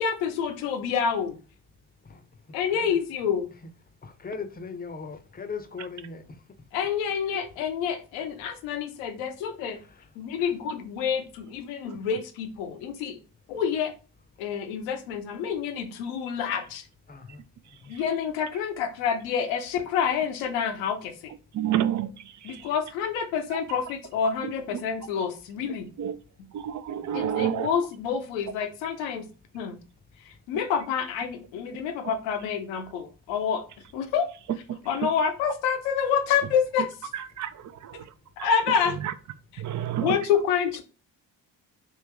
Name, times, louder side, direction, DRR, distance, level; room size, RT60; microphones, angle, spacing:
voice 1, 0.0-1.4 2.5-3.5 6.7-9.8 10.2-13.2 13.5-13.9 14.4-16.8 17.9-21.1 22.4-25.8 27.1-29.3 29.5-29.8 30.3-33.6 33.9-34.3 34.9-36.9 38.4-39.0 40.0-40.8, left 7 dB, 75° left, 0.8 m, -28 dB
voice 2, 2.0-3.0 3.6-3.7 4.0-6.7 7.3-7.4 9.7-10.1 10.4-10.5 17.1-18.0 21.6-21.8 26.9-27.3, left 5 dB, 20° left, 0.7 m, -41 dB
voice 3, 21.5-22.7 24.4-24.8 26.0-26.1 26.5-27.7 34.7-34.8 37.1-38.1 38.4-38.5 38.8-39.1 39.6-40.2, right 10 dB, 40° right, 0.4 m, -30 dB
3.4 x 2.9 x 3.3 m
hypercardioid pair, 50°, 48 cm